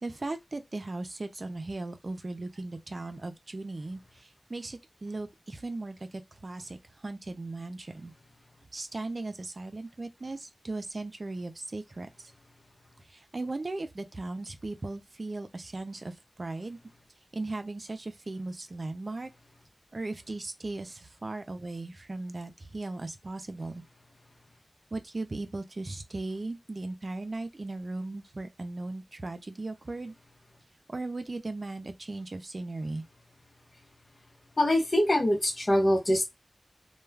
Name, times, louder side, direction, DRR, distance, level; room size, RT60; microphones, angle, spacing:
voice 1, 0.0-8.1 8.7-12.3 13.0-16.8 17.3-19.3 19.9-23.8 24.9-30.1 30.9-33.0, right 2 dB, 60° right, 0.4 m, -37 dB
voice 2, 34.6-36.2, left 1 dB, 55° left, 0.8 m, -24 dB
2.2 x 2.2 x 3.3 m
wide cardioid pair, 50°, 0 cm